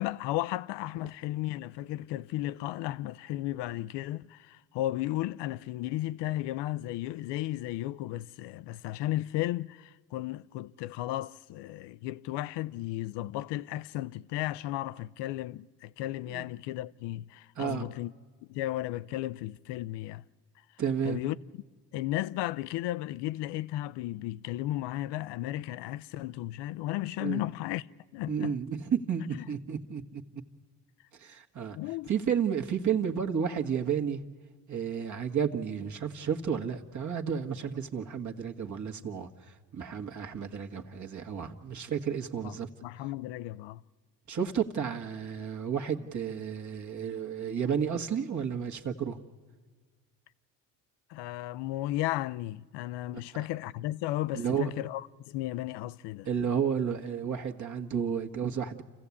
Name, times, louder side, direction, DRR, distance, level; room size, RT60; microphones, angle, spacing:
voice 1, 0.0-18.1 18.5-20.2 21.0-21.4 21.9-27.9 28.1-28.6 29.4-29.5 31.7-32.1 42.4-42.6 42.8-43.8 51.1-56.3, left 15 dB, 65° left, 0.7 m, -34 dB
voice 2, 20.8-21.2 27.2-27.4 28.3-30.2 31.2-31.8 32.1-34.2 34.7-42.7 44.3-49.2 53.1-53.2 54.3-54.7 56.2-58.8, right 7 dB, 40° right, 1.6 m, -32 dB
28.5 x 14.5 x 8.4 m
supercardioid pair, 80°, 45 cm